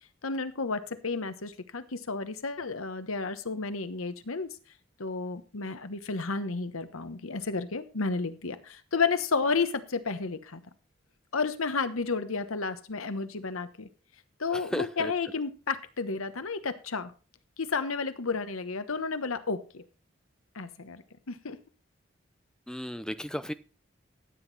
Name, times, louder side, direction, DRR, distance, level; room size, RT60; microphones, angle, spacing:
voice 1, 0.2-4.6 5.0-10.6 11.3-13.9 14.4-17.1 17.6-19.8 20.5-21.6, left 4 dB, 85° left, 12 dB, 1.1 m, -32 dB
voice 2, 14.5-15.1 22.7-23.5, equal, 5° left, 11 dB, 0.6 m, -34 dB
14.0 x 8.2 x 4.1 m, 0.35 s
head